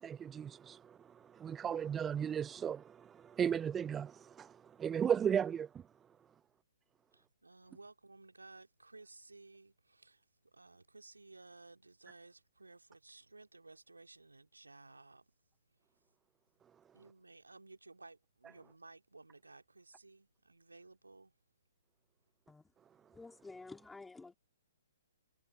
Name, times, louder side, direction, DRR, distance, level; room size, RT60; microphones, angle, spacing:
voice 1, 0.0-5.7, right 8 dB, 15° right, 0.4 m, -36 dB
voice 2, 7.1-15.3 16.9-21.3, right 3 dB, 80° right, 2.9 m, -57 dB
voice 3, 23.1-24.3, left 3 dB, 5° left, 3.1 m, -51 dB
figure-of-eight pair, 125°, 0 cm